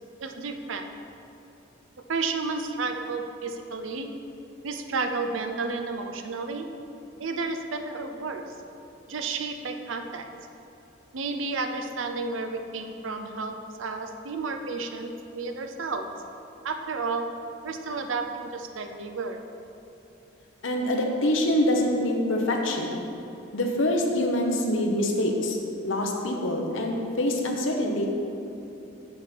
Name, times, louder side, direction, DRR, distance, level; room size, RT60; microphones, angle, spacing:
voice 1, 0.2-0.9 2.1-4.1 4.6-6.7 7.2-8.4 9.1-10.3 11.1-16.1 16.6-17.4 17.6-19.4, right 3 dB, 85° right, 6 dB, 0.6 m, -32 dB
voice 2, 20.6-23.0 23.5-25.6 25.8-28.1, left 1 dB, 80° left, 1 dB, 0.9 m, -25 dB
7.4 x 4.2 x 6.1 m, 2.9 s
head